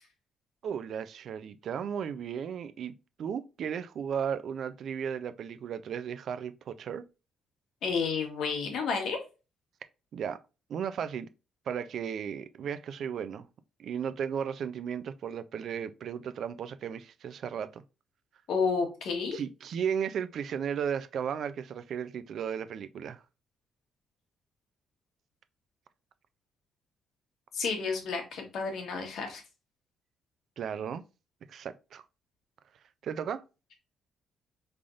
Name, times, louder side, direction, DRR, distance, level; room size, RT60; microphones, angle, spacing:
voice 1, 0.6-2.9 3.2-7.0 10.1-10.4 10.7-11.3 11.7-13.5 13.8-17.8 19.3-23.2 30.6-31.0 31.5-32.0 33.0-33.4, right 7 dB, 65° right, 0.3 m, -35 dB
voice 2, 7.8-9.2 18.5-19.4 27.5-29.4, left 5 dB, 75° left, 1.2 m, -31 dB
3.8 x 3.3 x 2.4 m
cardioid pair, 90°, 0 cm